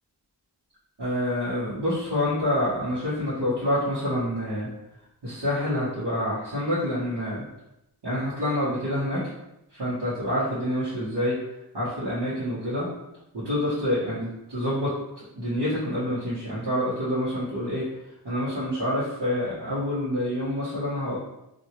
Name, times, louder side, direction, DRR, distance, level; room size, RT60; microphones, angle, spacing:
voice 1, 1.0-4.7 5.2-7.4 8.0-9.2 9.7-11.4 11.7-12.9 13.3-17.8 18.2-21.2, left 1 dB, 85° right, -13 dB, 1.3 m, -27 dB
3.0 x 2.7 x 2.9 m, 0.88 s
wide cardioid pair, 80°, 41 cm